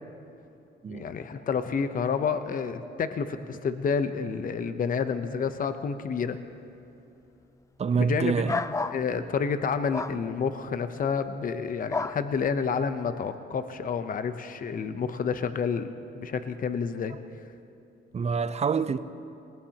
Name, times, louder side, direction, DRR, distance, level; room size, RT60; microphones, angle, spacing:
voice 1, 0.9-6.4 8.0-8.3 8.9-15.9 16.1-17.2, left 6 dB, 45° left, 0.8 m, -29 dB
voice 2, 7.8-8.6 18.1-19.0, right 5 dB, 35° right, 0.6 m, -26 dB
sound 1, 8.5-9.0 9.9-10.2 11.9-12.2, left 3 dB, 15° left, 0.5 m, -30 dB
20.0 x 20.0 x 2.9 m
cardioid pair, 90°, 20 cm